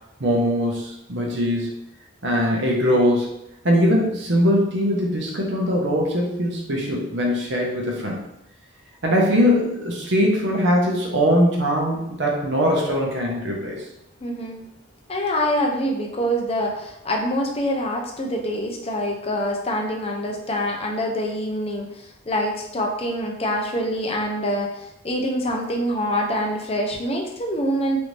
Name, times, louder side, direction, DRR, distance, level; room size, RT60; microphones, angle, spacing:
voice 1, 0.2-1.7 2.2-3.3 3.6-8.2 9.0-13.8, equal, 60° right, -2 dB, 0.8 m, -21 dB
voice 2, 14.2-14.6 15.1-28.0, equal, 30° left, 1 dB, 0.5 m, -25 dB
3.2 x 2.6 x 3.1 m, 0.81 s
head